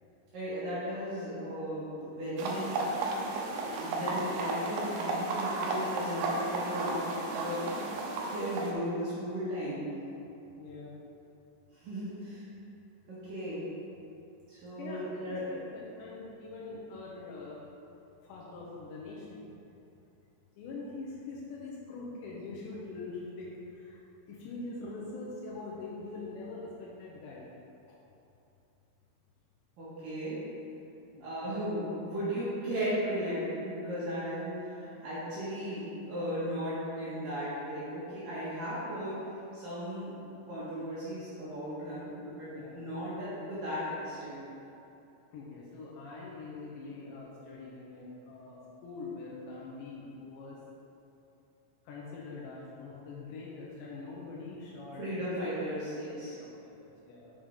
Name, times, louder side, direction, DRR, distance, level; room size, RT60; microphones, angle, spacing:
voice 1, 0.3-2.8 3.5-7.6 8.3-9.9 11.7-12.5 13.1-13.7 14.5-15.5 29.8-30.4 31.2-39.2 39.5-40.1 40.5-44.4 55.0-56.4, equal, 60° right, -11 dB, 2.6 m, -36 dB
sound 1, 2.4-8.7, right 2 dB, 90° right, 2.3 m, -33 dB
voice 2, 10.6-10.9 14.8-17.6 18.2-19.4 20.6-24.0 24.3-27.5 31.1-31.5 34.9-35.1 42.5-42.8 45.3-50.6 51.9-55.1 56.4-57.3, left 3 dB, 75° left, -4 dB, 2.9 m, -43 dB
7.4 x 6.9 x 3.7 m, 2.8 s
omnidirectional pair, 5.6 m